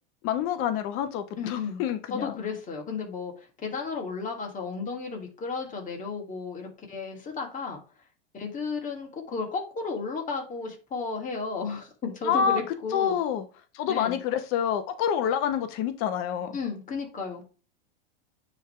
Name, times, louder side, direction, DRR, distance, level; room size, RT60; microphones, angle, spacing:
voice 1, 0.2-2.3 12.2-12.6 12.9-13.5 13.7-16.6, left 8 dB, 45° left, 1.0 m, -27 dB
voice 2, 1.4-1.8 2.1-7.8 8.3-13.2 13.9-14.2 16.5-17.4, left 4 dB, 25° left, 2.6 m, -33 dB
9.1 x 3.6 x 3.3 m
hypercardioid pair, 100°, 29 cm